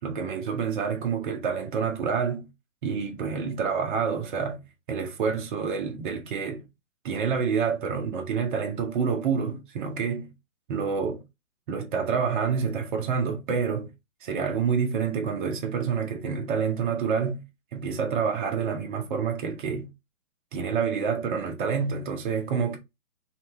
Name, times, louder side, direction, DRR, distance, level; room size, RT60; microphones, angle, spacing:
voice 1, 0.0-2.5 2.8-6.7 7.0-10.3 10.7-11.2 11.7-13.9 14.2-17.4 17.7-19.9 20.5-22.8, right 6 dB, 35° right, 1.0 m, -28 dB
4.3 x 2.7 x 3.1 m
hypercardioid pair, 145°, 42 cm